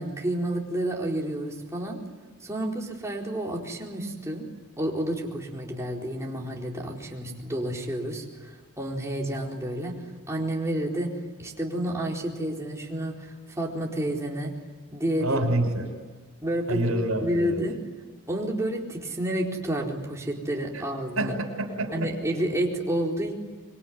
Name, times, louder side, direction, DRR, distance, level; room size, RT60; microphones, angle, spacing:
voice 1, 0.0-2.0 2.4-4.4 4.8-9.9 10.3-11.1 11.4-14.5 14.9-15.5 16.4-16.8 17.2-17.7 18.3-21.3 21.9-23.3, right 1 dB, 15° right, -1 dB, 4.3 m, -30 dB
voice 2, 15.2-15.9 16.7-17.6 20.7-20.8 21.2-22.1, right 1 dB, 75° right, 5 dB, 6.3 m, -27 dB
26.0 x 23.0 x 9.5 m, 1.4 s
head